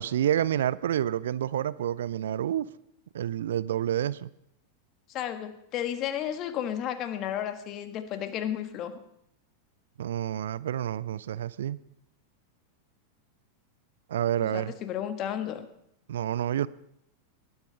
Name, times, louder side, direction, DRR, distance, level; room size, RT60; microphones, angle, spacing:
voice 1, 0.0-2.7 3.1-4.3 10.0-11.8 14.1-14.7 16.1-16.7, right 11 dB, 60° right, 19 dB, 0.4 m, -28 dB
voice 2, 5.1-9.0 14.4-15.7, left 10 dB, 35° left, 10 dB, 1.5 m, -33 dB
19.5 x 11.0 x 5.3 m, 0.76 s
figure-of-eight pair, 90°, 0 cm